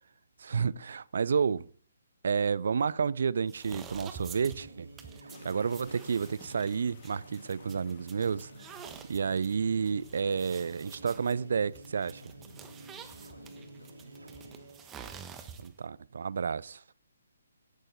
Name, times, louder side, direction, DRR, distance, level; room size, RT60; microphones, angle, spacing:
voice 1, 0.4-1.7 2.2-4.9 5.4-8.5 9.1-12.2 15.6-16.8, right 6 dB, 50° right, 0.5 m, -30 dB
sound 1, 3.5-15.9, right 7 dB, 15° right, 1.2 m, -49 dB
sound 2, 4.1-15.1, right 1 dB, 70° right, 2.7 m, -51 dB
sound 3, 5.3-11.7, left 6 dB, 40° left, 3.0 m, -60 dB
voice 2, 12.4-14.0, left 2 dB, 60° left, 3.3 m, -60 dB
16.5 x 11.5 x 3.9 m
figure-of-eight pair, 135°, 0 cm